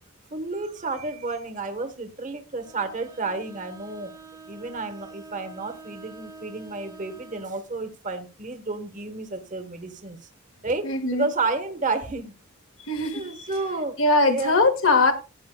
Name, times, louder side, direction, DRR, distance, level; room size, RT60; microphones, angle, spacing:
voice 1, 0.3-4.1 4.5-10.3 10.6-12.3 13.1-14.0 14.3-14.6, right 3 dB, 40° right, 1.2 m, -31 dB
Bowed string instrument, 2.6-7.6, right 4 dB, 20° right, 1.1 m, -46 dB
voice 2, 10.8-11.3 12.8-13.5 14.0-15.1, left 3 dB, 70° left, 1.7 m, -21 dB
15.5 x 9.4 x 2.2 m
head